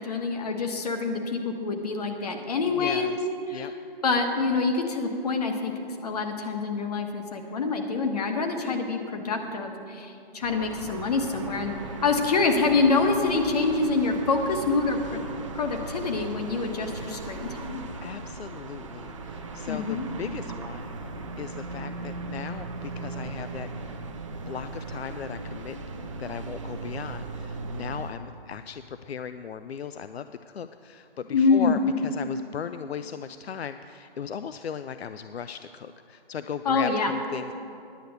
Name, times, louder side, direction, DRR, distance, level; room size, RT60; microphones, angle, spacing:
voice 1, 0.0-3.2 3.5-3.7 4.0-11.8 12.0-15.2 15.5-17.9 19.7-20.1 31.3-31.9 36.6-37.1, left 4 dB, 40° left, 4 dB, 1.1 m, -26 dB
voice 2, 2.7-3.7 18.0-20.9 21.4-24.0 24.5-25.8 26.2-37.5, left 7 dB, 85° left, 11 dB, 0.5 m, -37 dB
sound 1, 10.4-28.1, right 3 dB, 30° right, 0.6 m, -38 dB
10.0 x 6.7 x 7.9 m, 2.7 s
hypercardioid pair, 155°, 31 cm